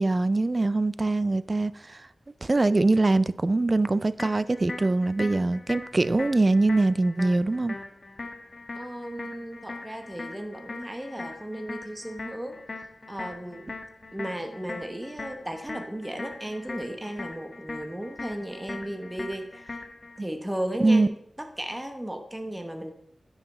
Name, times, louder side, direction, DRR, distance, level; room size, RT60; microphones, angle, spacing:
voice 1, 0.0-2.0 2.4-7.8 20.2-20.3 20.8-21.1, right 2 dB, 40° right, 0.4 m, -23 dB
sound 1, 4.2-20.2, left 3 dB, 50° left, 1.2 m, -41 dB
voice 2, 8.7-12.6 13.1-13.7 14.1-19.8 20.2-22.9, right 1 dB, 10° right, 1.0 m, -35 dB
10.0 x 5.7 x 4.2 m
wide cardioid pair, 60°, 0 cm